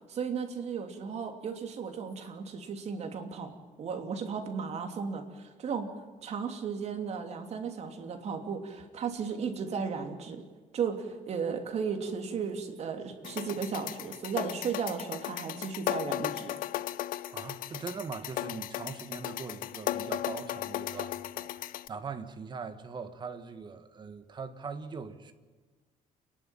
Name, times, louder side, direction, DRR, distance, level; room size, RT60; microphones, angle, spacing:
voice 1, 0.1-3.5 3.8-5.9 6.2-10.4 10.7-16.5, right 6 dB, 50° right, 2.9 m, -35 dB
sound 1, 13.2-21.9, left 14 dB, 85° left, 0.7 m, -36 dB
voice 2, 17.3-25.3, right 5 dB, 35° right, 1.6 m, -41 dB
29.0 x 11.5 x 9.1 m
cardioid pair, 145°, 14 cm